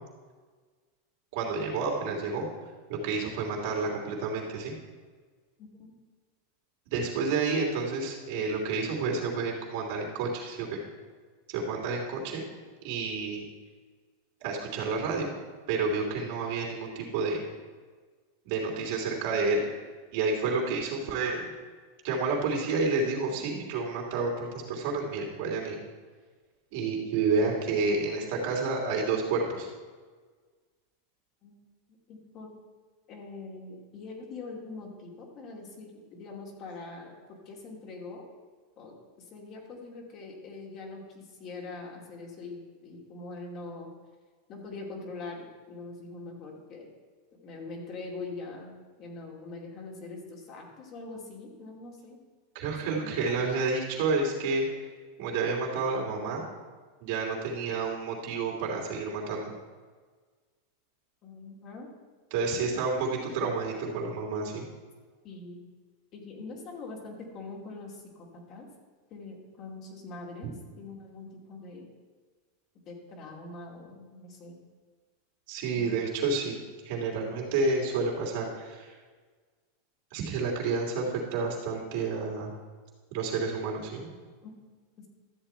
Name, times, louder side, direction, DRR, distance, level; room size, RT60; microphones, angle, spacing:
voice 1, 1.3-2.4 2.9-4.7 6.9-10.8 11.5-12.4 12.8-13.4 14.4-15.3 15.7-17.4 18.4-19.6 20.1-21.5 22.0-25.8 26.7-29.7 52.5-54.8 55.2-56.4 57.0-59.5 62.3-64.7 75.5-78.9 80.1-82.5 83.1-84.1, right 4 dB, 65° right, -1 dB, 2.9 m, -30 dB
voice 2, 5.6-5.9 31.4-31.7 32.1-32.5 33.1-38.3 38.8-43.9 44.5-46.9 47.4-52.2 53.0-53.6 61.2-61.9 62.5-62.8 65.2-65.6 66.1-68.7 69.1-71.9 72.9-74.6 75.8-75.9 77.1-77.4 84.4-84.5, left 3 dB, 45° left, -1 dB, 2.5 m, -43 dB
13.0 x 7.4 x 4.4 m, 1.5 s
hypercardioid pair, 120°, 0 cm